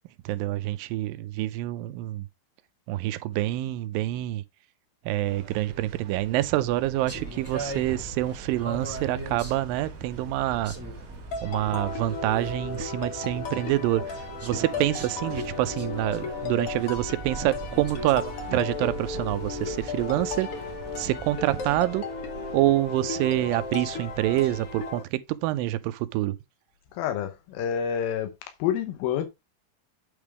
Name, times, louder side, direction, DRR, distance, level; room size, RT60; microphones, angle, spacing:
voice 1, 0.3-2.2 2.9-4.4 5.1-10.7 11.4-20.6 21.0-22.1 22.5-26.4, right 15 dB, 80° right, 2.2 m, -27 dB
sound 1, 5.2-24.9, right 7 dB, 55° right, 2.4 m, -43 dB
sound 2, 7.0-21.8, right 1 dB, 20° right, 0.4 m, -41 dB
sound 3, 11.3-25.0, left 5 dB, 60° left, 1.6 m, -35 dB
voice 2, 26.9-29.3, left 9 dB, 85° left, 2.7 m, -28 dB
8.8 x 3.5 x 4.7 m
omnidirectional pair, 4.1 m